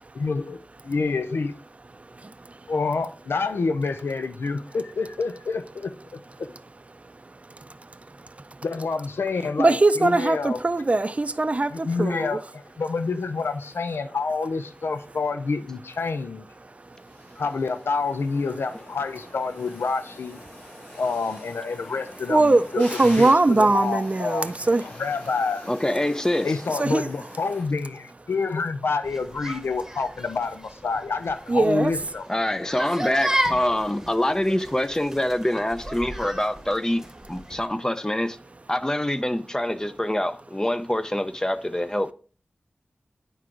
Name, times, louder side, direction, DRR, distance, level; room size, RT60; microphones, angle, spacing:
voice 1, 0.1-0.6 0.8-1.5 2.7-6.2 8.6-10.6 11.7-16.5 17.4-20.4 21.0-25.7 26.4-32.2, left 4 dB, 85° left, 0.6 m, -28 dB
voice 2, 9.6-12.3 22.3-24.8 26.8-27.1 31.5-31.9, right 2 dB, 35° right, 0.5 m, -20 dB
sound 1, 12.5-27.6, left 1 dB, 65° left, 4.5 m, -45 dB
voice 3, 25.7-26.5 32.3-37.0 37.3-38.4 38.7-42.1, left 1 dB, 15° left, 0.5 m, -25 dB
sound 2, 29.0-37.7, right 1 dB, 10° right, 1.1 m, -34 dB
9.3 x 4.7 x 3.8 m
wide cardioid pair, 55°, 4 cm